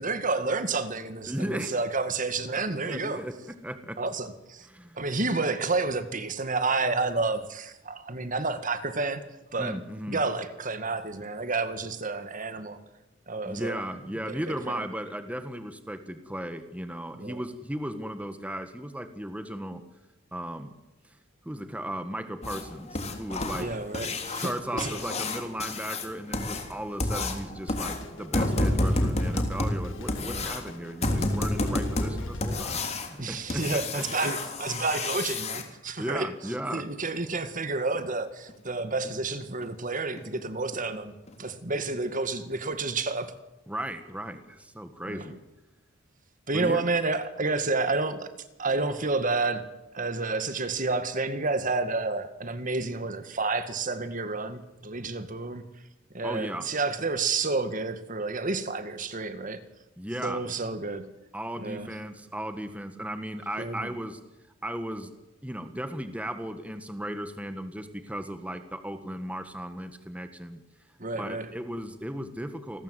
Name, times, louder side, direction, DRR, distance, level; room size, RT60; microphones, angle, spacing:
voice 1, 0.0-3.2 4.0-4.7 5.0-9.2 9.5-9.8 10.1-12.8 13.3-13.8 14.3-14.8 17.2-17.4 23.6-24.9 30.2-30.5 33.2-36.3 36.7-41.1 41.4-43.4 45.0-45.3 46.5-48.3 48.6-55.6 56.1-59.6 60.2-61.1 61.6-61.9 63.6-63.9 71.0-71.5, right 3 dB, 40° right, 2.0 m, -30 dB
voice 2, 1.3-1.8 2.5-4.0 4.7-5.0 9.6-10.2 13.4-19.8 20.3-20.7 21.0-21.1 21.4-23.7 24.4-34.1 36.0-36.9 43.7-45.4 46.5-46.8 56.2-56.7 60.0-60.5 61.3-64.2 64.6-65.1 65.4-70.6 71.1-72.8, equal, 5° right, 1.6 m, -36 dB
sound 1, 22.4-35.6 37.9-38.0 38.5-38.6 39.0-39.1 39.6-39.7 40.2-40.3 40.7-40.8 41.3-41.4, left 2 dB, 35° left, 3.5 m, -30 dB
Drum kit, 27.7-33.1, left 1 dB, 75° left, 2.2 m, -43 dB
29.0 x 20.5 x 8.2 m
head